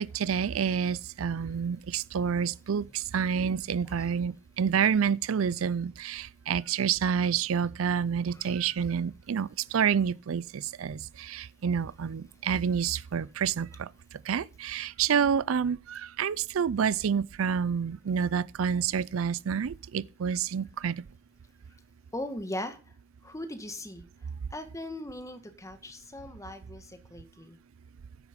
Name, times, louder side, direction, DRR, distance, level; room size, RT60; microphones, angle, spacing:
voice 1, 0.0-13.9 14.3-21.0, right 7 dB, 85° right, 0.4 m, -28 dB
voice 2, 2.3-3.4 3.8-4.1 8.3-8.6 12.3-12.4 21.7-21.8 22.1-22.9 23.2-27.6, left 1 dB, 15° left, 1.4 m, -41 dB
10.0 x 8.2 x 5.1 m
head